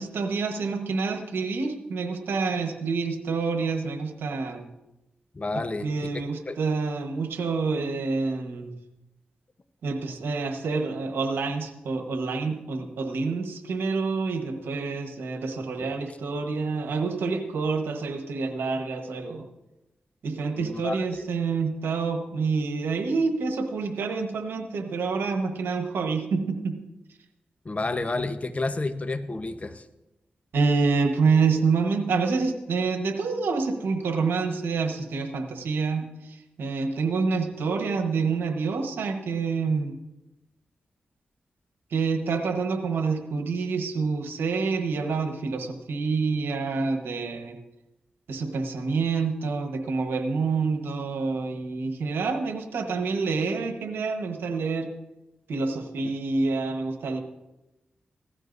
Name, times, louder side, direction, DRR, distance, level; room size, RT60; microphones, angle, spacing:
voice 1, 0.0-4.6 5.8-8.7 9.8-19.5 20.2-26.8 30.5-39.9 41.9-47.6 48.3-54.9 55.5-57.2, right 4 dB, 90° right, 5 dB, 1.2 m, -27 dB
voice 2, 5.3-5.9 6.1-6.6 15.8-16.1 20.5-21.0 27.6-29.9, left 2 dB, 40° left, 10 dB, 0.9 m, -30 dB
16.5 x 13.5 x 2.6 m, 0.97 s
cardioid pair, 50°, 4 cm